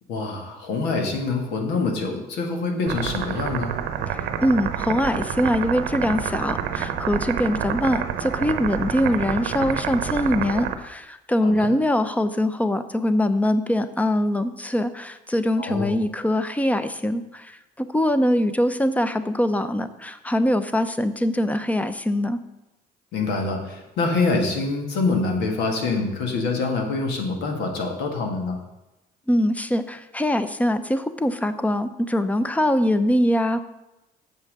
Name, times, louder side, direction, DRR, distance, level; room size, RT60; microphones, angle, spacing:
voice 1, 0.1-3.7 11.4-11.7 15.6-16.0 23.1-28.6, left 3 dB, 90° left, 2 dB, 1.7 m, -25 dB
sound 1, 2.9-10.7, right 8 dB, 80° right, 0.8 m, -28 dB
voice 2, 4.2-22.4 29.3-33.6, left 1 dB, 10° left, 11 dB, 0.6 m, -23 dB
7.4 x 5.7 x 6.5 m, 0.96 s
cardioid pair, 110°, 17 cm